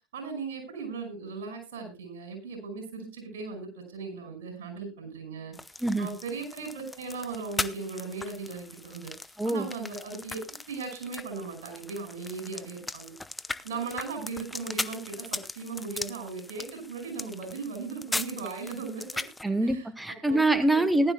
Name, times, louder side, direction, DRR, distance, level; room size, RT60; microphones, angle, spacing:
voice 1, 0.1-10.4 10.7-13.1 13.6-19.9 20.3-20.4 20.7-20.8, right 4 dB, 75° right, 5 dB, 5.6 m, -38 dB
sound 1, 5.5-19.4, left 2 dB, 10° left, 0.9 m, -39 dB
voice 2, 19.4-21.1, right 2 dB, 10° right, 11 dB, 1.3 m, -25 dB
19.5 x 11.5 x 2.3 m, 0.28 s
hypercardioid pair, 80°, 0 cm